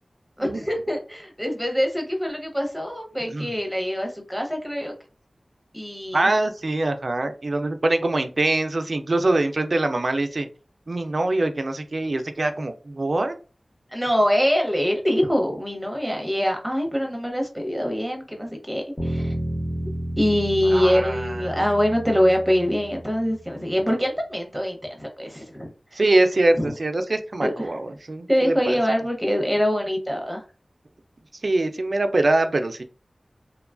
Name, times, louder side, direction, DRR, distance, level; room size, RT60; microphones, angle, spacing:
voice 1, 0.4-4.9 5.7-6.3 13.9-19.3 20.2-26.0 26.6-26.7 27.4-27.8 28.3-30.4, equal, 5° right, 2 dB, 0.8 m, -24 dB
voice 2, 6.1-10.5 10.9-13.4 20.7-21.4 26.0-28.5 31.4-32.8, right 2 dB, 60° right, 8 dB, 0.3 m, -23 dB
Bass guitar, 19.0-23.4, right 1 dB, 20° left, 1.0 m, -31 dB
2.9 x 2.2 x 2.4 m, 0.35 s
wide cardioid pair, 65°, 0 cm